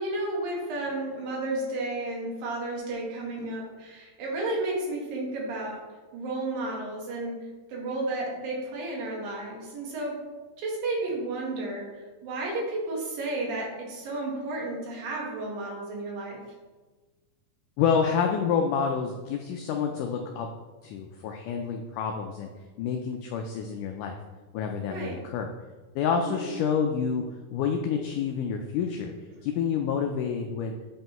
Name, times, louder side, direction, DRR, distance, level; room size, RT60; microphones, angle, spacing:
voice 1, 0.0-5.8 6.1-7.4 7.7-10.1 10.6-16.4 24.9-25.2 26.2-26.5, right 2 dB, 75° right, -3 dB, 3.1 m, -32 dB
voice 2, 17.8-20.5 20.8-22.5 22.8-24.2 24.5-25.5 26.0-27.2 27.5-29.1 29.4-30.7, left 6 dB, 85° left, 3 dB, 1.8 m, -28 dB
8.0 x 5.5 x 3.0 m, 1.3 s
omnidirectional pair, 4.2 m